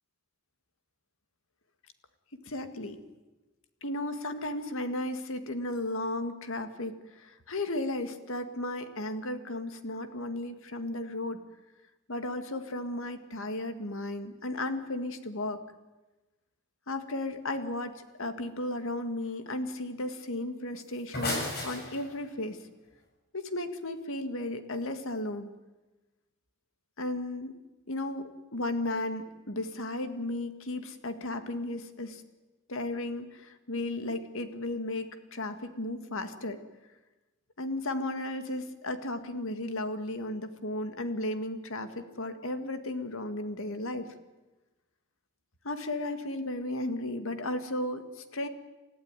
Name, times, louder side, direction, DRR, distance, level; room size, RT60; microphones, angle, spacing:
voice 1, 2.3-3.0 3.8-11.4 12.1-15.6 16.9-22.6 23.3-25.5 27.0-27.6 27.9-32.2 32.7-36.6 37.6-44.1 45.6-48.5, left 1 dB, 65° left, 9 dB, 2.0 m, -34 dB
sound 1, 20.8-22.4, left 2 dB, 50° left, 6.8 m, -34 dB
28.5 x 14.5 x 9.7 m, 1.1 s
head